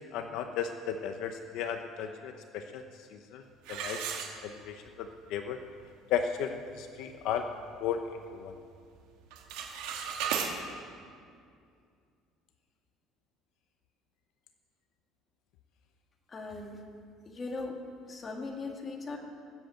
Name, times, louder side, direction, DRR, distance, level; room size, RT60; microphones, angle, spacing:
voice 1, 0.0-5.6 6.1-7.5 7.8-8.0 8.3-8.6, left 8 dB, 60° left, 6 dB, 0.8 m, -35 dB
sound 1, 3.6-4.9 5.4-5.5 6.0-6.1 6.5-6.8 7.3-8.4 8.6-9.0 9.2-10.5, right 7 dB, 85° right, 2.1 m, -36 dB
voice 2, 16.3-16.8 17.3-19.2, left 3 dB, 20° left, 0 dB, 1.9 m, -39 dB
20.0 x 7.8 x 7.9 m, 2.3 s
cardioid pair, 170°, 0 cm